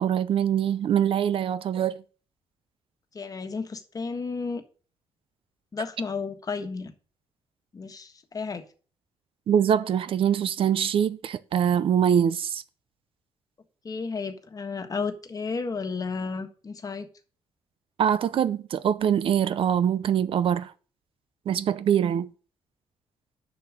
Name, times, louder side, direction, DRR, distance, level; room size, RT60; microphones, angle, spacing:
voice 1, 0.0-2.0 9.5-12.6 18.0-20.7 21.5-22.3, right 9 dB, 60° right, 0.6 m, -23 dB
voice 2, 3.1-4.6 5.7-6.9 7.7-8.6 13.8-17.1, left 4 dB, 35° left, 1.4 m, -32 dB
6.9 x 6.2 x 6.2 m
cardioid pair, 85°, 10 cm